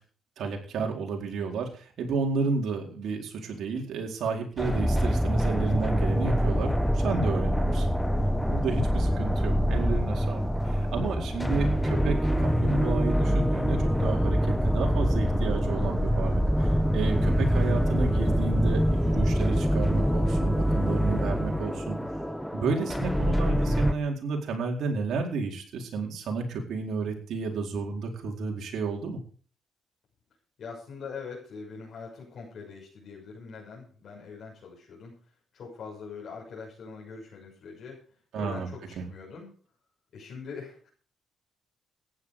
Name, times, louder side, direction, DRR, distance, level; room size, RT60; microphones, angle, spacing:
voice 1, 0.4-7.9 8.5-22.0 22.5-29.2 38.3-38.7 39.0-39.1, right 4 dB, 70° right, 1 dB, 4.4 m, -32 dB
sound 1, 4.6-23.9, equal, ahead, 1.1 m, -25 dB
voice 2, 5.6-6.0 8.8-9.3 11.2-11.4 17.9-18.0 22.7-23.1 30.6-35.1 35.5-38.0 38.3-39.5 40.1-40.9, left 5 dB, 60° left, -3 dB, 6.4 m, -43 dB
15.0 x 11.0 x 5.0 m, 0.43 s
cardioid pair, 90°, 0 cm